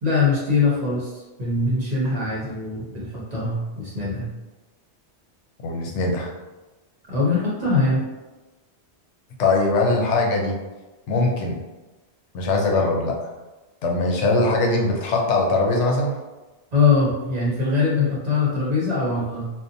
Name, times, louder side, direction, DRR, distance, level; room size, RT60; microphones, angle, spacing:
voice 1, 0.0-4.3 7.1-8.0 16.7-19.5, left 4 dB, 45° right, -6 dB, 0.6 m, -22 dB
voice 2, 5.6-6.3 9.4-10.5 11.1-11.6 12.3-13.1 13.8-16.1, left 2 dB, 80° left, 0 dB, 0.9 m, -21 dB
2.6 x 2.1 x 2.5 m, 1.1 s
omnidirectional pair, 1.2 m